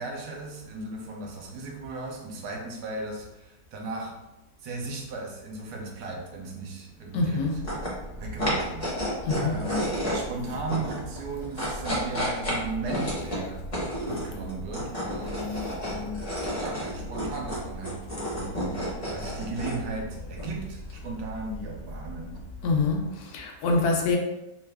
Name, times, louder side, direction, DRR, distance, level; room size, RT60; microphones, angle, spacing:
voice 1, 0.0-4.2 4.6-7.6 8.1-8.9 9.4-13.6 14.1-22.4, right 2 dB, 85° right, 1 dB, 1.2 m, -36 dB
voice 2, 7.1-7.6 9.3-9.5 22.6-24.2, left 3 dB, 80° left, 2 dB, 1.1 m, -25 dB
sound 1, 7.5-22.9, equal, 25° left, 0.8 m, -32 dB
3.1 x 2.3 x 3.3 m, 0.94 s
omnidirectional pair, 1.6 m